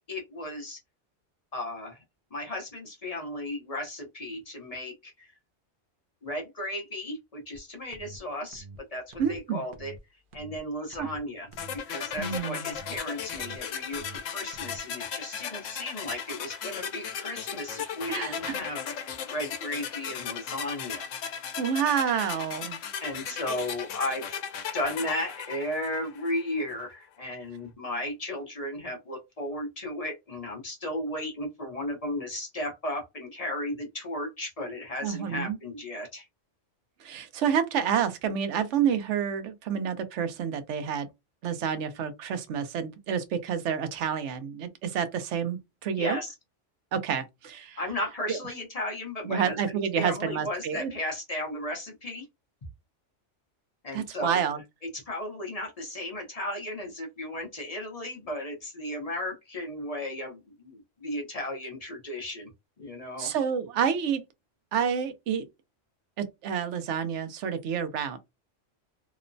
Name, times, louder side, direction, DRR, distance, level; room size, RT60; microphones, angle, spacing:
voice 1, 0.1-0.8 1.5-2.0 2.3-5.3 6.2-8.6 8.9-9.9 10.3-11.5 11.7-21.1 23.0-24.4 24.7-36.3 46.0-46.3 47.8-49.6 49.9-52.3 53.8-54.4 54.8-62.5 62.8-63.3, left 1 dB, 35° left, 0.7 m, -35 dB
sound 1, 7.5-7.6 7.9-8.2 8.5-8.8 9.1-9.4 9.7-10.0 10.3-10.6 10.9-11.2 11.5-11.8 12.1-12.4 12.7-13.0 13.3-13.6 13.9-14.2 14.5-14.8, right 3 dB, 55° right, 0.6 m, -46 dB
voice 2, 9.2-9.6 11.0-11.1 12.2-12.7 18.1-18.5 21.6-22.8 23.3-23.4 35.0-35.6 37.0-41.1 41.4-46.2 46.9-47.8 48.3-48.4 49.2-50.9 53.9-54.6 63.2-64.2 64.7-65.5 66.2-68.2, right 7 dB, 75° right, 0.9 m, -29 dB
sound 2, 11.6-26.5, left 7 dB, 90° left, 0.9 m, -36 dB
3.0 x 2.0 x 2.5 m
omnidirectional pair, 1.3 m